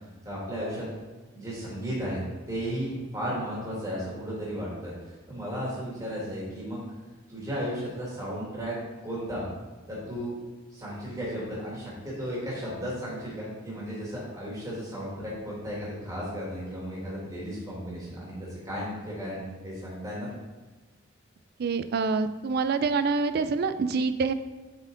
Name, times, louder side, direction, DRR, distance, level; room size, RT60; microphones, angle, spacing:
voice 1, 0.3-0.9 1.3-2.2 2.5-4.9 5.3-6.8 7.3-8.8 9.0-9.5 9.9-10.3 10.7-20.3, equal, 15° right, -6 dB, 2.0 m, -34 dB
voice 2, 21.6-24.3, right 4 dB, 50° right, 11 dB, 0.3 m, -26 dB
7.1 x 4.4 x 3.8 m, 1.3 s
head